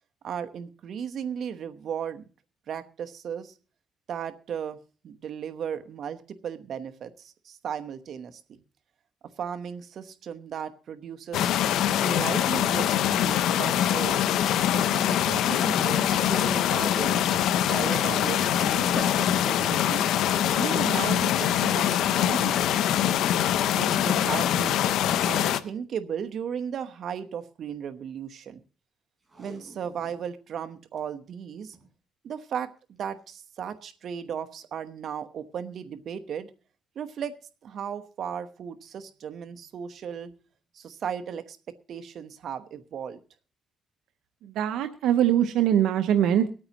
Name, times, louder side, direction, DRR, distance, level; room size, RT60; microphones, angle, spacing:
voice 1, 0.2-2.3 2.7-3.5 4.1-4.8 5.0-8.6 9.4-11.5 11.9-14.2 14.7-17.3 17.7-20.1 20.6-22.7 23.6-24.8 25.2-28.6 29.4-31.8 32.2-36.5 36.9-37.4 37.6-40.3 40.7-43.2, right 8 dB, 65° right, 8 dB, 1.0 m, -36 dB
sound 1, 11.3-25.6, left 10 dB, 85° left, 0.6 m, -24 dB
sound 2, 15.8-20.4, left 1 dB, 15° left, 6.0 m, -43 dB
Packing tape duct tape, 29.2-30.3 30.7-30.8 31.0-31.1 31.6-31.9 33.0-33.2 33.8-33.9, right 1 dB, 20° right, 4.5 m, -51 dB
voice 2, 44.5-46.5, right 10 dB, 85° right, 9 dB, 0.8 m, -22 dB
23.5 x 8.8 x 2.9 m, 0.39 s
cardioid pair, 90°, 0 cm